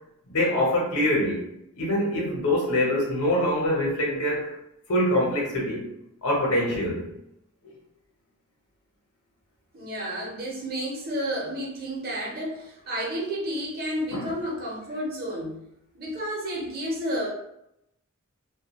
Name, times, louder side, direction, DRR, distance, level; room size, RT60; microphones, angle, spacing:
voice 1, 0.3-1.5 1.8-4.6 4.9-5.8 6.2-7.1 14.1-14.3, left 1 dB, 85° left, -2 dB, 0.9 m, -24 dB
voice 2, 9.7-15.7 15.9-17.3, equal, 45° right, -4 dB, 0.8 m, -31 dB
2.4 x 2.3 x 2.9 m, 0.80 s
head